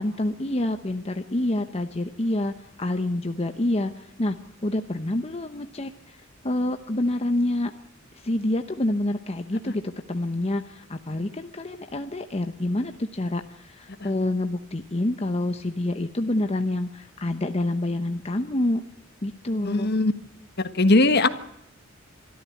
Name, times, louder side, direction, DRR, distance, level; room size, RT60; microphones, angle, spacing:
voice 1, 0.0-4.4 4.6-7.7 8.2-18.8 19.2-19.9, left 1 dB, 30° left, 7 dB, 0.9 m, -27 dB
voice 2, 19.6-20.1 20.7-21.3, left 2 dB, 55° left, 11 dB, 1.5 m, -19 dB
23.5 x 13.5 x 8.4 m, 0.79 s
head